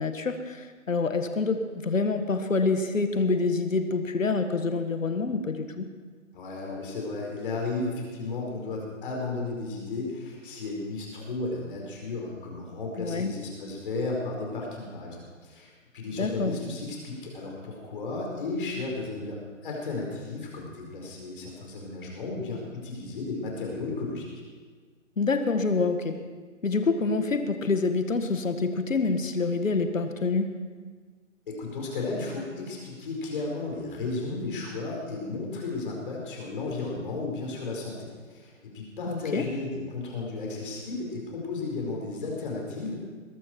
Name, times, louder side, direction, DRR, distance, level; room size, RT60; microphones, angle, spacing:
voice 1, 0.0-5.9 13.0-13.3 16.1-16.5 25.2-26.2 26.6-30.6 39.1-39.4, left 4 dB, 75° left, 7 dB, 1.7 m, -27 dB
voice 2, 6.3-24.3 31.5-43.0, left 3 dB, 40° left, -1 dB, 4.9 m, -34 dB
21.0 x 12.5 x 4.6 m, 1.5 s
figure-of-eight pair, 155°, 39 cm